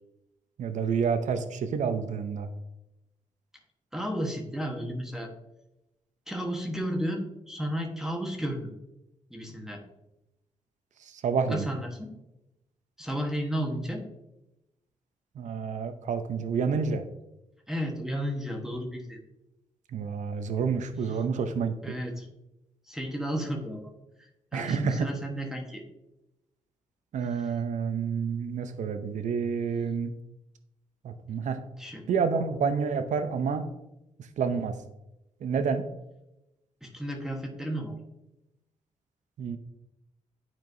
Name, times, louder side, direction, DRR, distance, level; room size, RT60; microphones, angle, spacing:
voice 1, 0.6-2.5 11.0-11.7 15.4-17.0 19.9-21.7 24.5-25.1 27.1-30.1 31.0-31.6 32.1-33.7 34.4-34.8 35.4-35.8 39.4-39.6, right 6 dB, 70° right, 9 dB, 0.6 m, -29 dB
voice 2, 3.9-5.3 6.3-8.7 9.3-9.8 11.5-12.1 13.0-14.1 17.7-19.2 21.8-22.3 22.9-23.8 24.5-25.9 31.8-32.1 36.8-38.0, equal, 5° right, 1 dB, 1.2 m, -33 dB
10.5 x 4.5 x 2.6 m, 0.93 s
cardioid pair, 85°, 13 cm